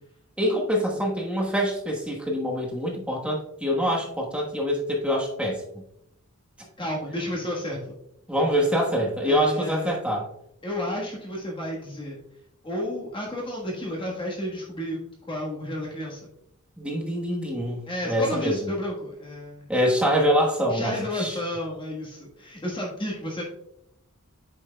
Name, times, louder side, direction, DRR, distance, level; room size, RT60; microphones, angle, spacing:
voice 1, 0.4-5.6 8.3-10.2 16.8-18.7 19.7-21.4, equal, 5° right, -1 dB, 1.2 m, -25 dB
voice 2, 6.8-7.9 9.2-10.0 10.6-12.2 12.6-15.0 15.3-16.2 17.9-19.7 20.7-23.4, left 1 dB, 20° left, -3 dB, 1.3 m, -32 dB
8.6 x 6.1 x 2.2 m, 0.78 s
head